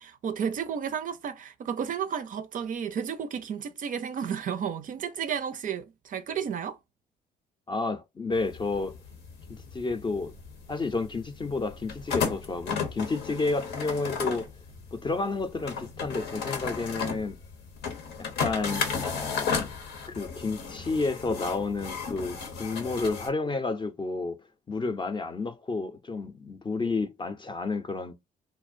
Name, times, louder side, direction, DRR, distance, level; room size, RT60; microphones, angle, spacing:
voice 1, 0.0-6.8, right 7 dB, 50° right, 0.4 m, -32 dB
voice 2, 7.7-8.9 9.5-10.3 10.7-14.5 14.9-17.4 18.2-19.7 20.1-24.4 24.7-28.1, left 3 dB, 25° left, 0.5 m, -31 dB
sound 1, 8.3-23.3, left 5 dB, 75° left, 0.7 m, -35 dB
2.5 x 2.0 x 2.5 m
supercardioid pair, 60°, 18 cm